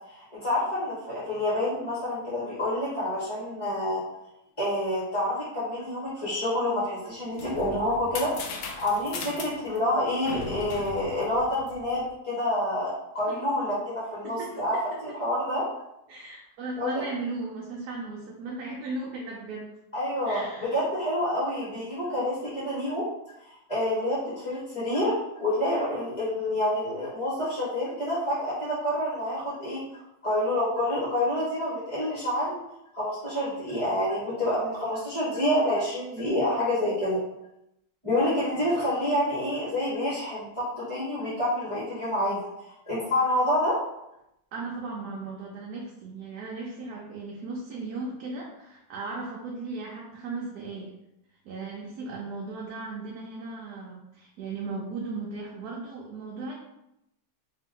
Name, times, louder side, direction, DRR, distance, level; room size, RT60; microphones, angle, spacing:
voice 1, 0.1-4.0 4.6-14.7 15.0-15.6 16.8-17.0 19.9-23.0 23.4-25.1 25.4-29.8 30.2-32.6 32.9-37.2 38.0-42.4 42.9-43.7, left 1 dB, 20° left, -9 dB, 1.1 m, -28 dB
sound 1, 7.1-12.1, left 4 dB, 70° left, 1.0 m, -38 dB
voice 2, 14.2-14.8 15.1-15.2 16.1-19.7 20.2-20.8 44.5-50.9 51.4-56.5, right 3 dB, 75° right, -2 dB, 1.1 m, -37 dB
3.3 x 2.8 x 3.6 m, 0.84 s
omnidirectional pair, 1.7 m